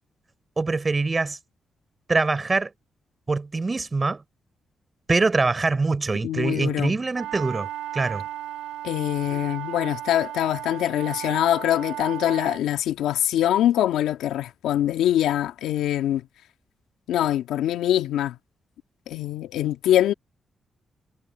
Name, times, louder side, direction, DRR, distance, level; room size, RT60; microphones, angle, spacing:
voice 1, 0.6-1.4 2.1-2.7 3.3-4.2 5.1-8.2, right 3 dB, 35° right, 4.8 m, -24 dB
voice 2, 6.2-6.9 8.8-16.3 17.1-18.4 19.1-20.1, left 12 dB, 90° left, 1.8 m, -23 dB
sound 1, 7.1-12.6, right 13 dB, 90° right, 4.7 m, -35 dB
supercardioid pair, 60°, 0 cm